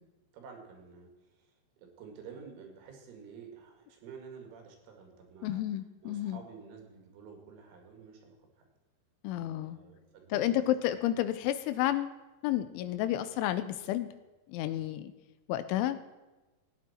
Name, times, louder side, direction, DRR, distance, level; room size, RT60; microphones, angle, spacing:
voice 1, 0.3-5.6 6.0-8.7 9.5-10.9, right 6 dB, 85° right, 3 dB, 4.7 m, -50 dB
voice 2, 5.4-6.4 9.2-9.8 10.3-14.1 14.5-15.1 15.5-16.0, left 13 dB, 85° left, 11 dB, 3.0 m, -31 dB
17.0 x 9.3 x 4.3 m, 1.1 s
omnidirectional pair, 5.5 m